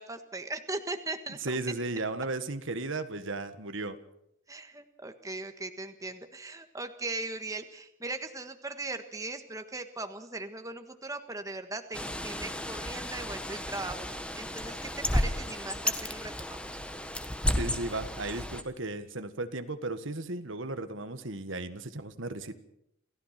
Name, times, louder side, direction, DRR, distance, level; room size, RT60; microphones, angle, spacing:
voice 1, 0.0-1.6 4.5-14.1 14.3-16.7, right 2 dB, 15° right, 7 dB, 1.5 m, -39 dB
voice 2, 1.4-4.0 17.5-22.5, right 2 dB, 65° right, 9 dB, 1.6 m, -35 dB
Bird, 11.9-18.6, left 1 dB, 5° left, 1.4 m, -33 dB
28.5 x 15.5 x 6.0 m, 0.77 s
head